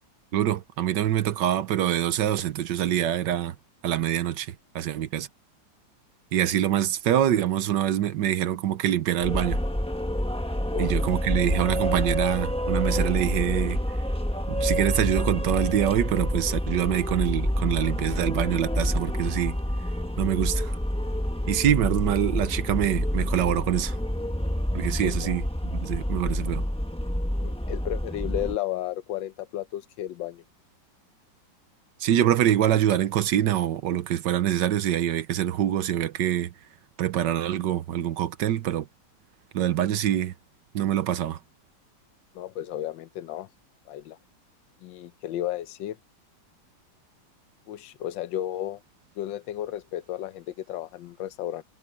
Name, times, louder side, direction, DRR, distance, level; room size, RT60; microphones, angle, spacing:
voice 1, 0.3-3.5 3.8-5.3 6.3-9.6 10.8-13.8 14.5-19.6 20.2-20.8 21.4-24.0 24.7-26.6 32.0-36.5 37.0-38.9 39.5-40.3 40.7-41.4, right 11 dB, 75° right, 1.5 m, -25 dB
sound 1, 9.2-28.5, equal, 5° left, 0.8 m, -28 dB
voice 2, 25.0-25.3 27.4-30.4 42.3-43.5 43.9-44.2 44.8-46.0 47.7-48.8 49.2-51.6, left 12 dB, 85° left, 1.4 m, -33 dB
omnidirectional pair, 2.0 m